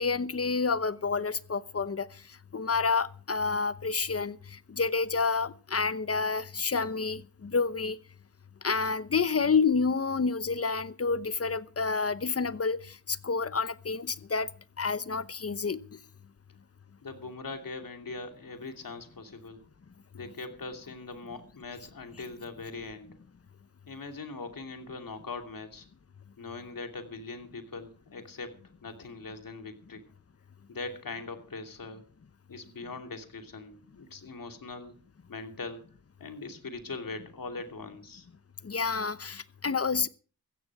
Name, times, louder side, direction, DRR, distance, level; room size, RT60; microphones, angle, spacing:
voice 1, 0.0-2.2 2.5-8.0 8.6-14.5 14.8-15.8 38.6-40.1, left 4 dB, 40° left, 0.9 m, -29 dB
voice 2, 17.0-19.6 20.1-23.2 23.9-25.8 26.4-30.1 30.7-32.1 32.5-35.0 35.3-35.8 36.2-38.3, left 3 dB, 65° left, 2.9 m, -41 dB
15.5 x 13.5 x 4.8 m
cardioid pair, 60°, 36 cm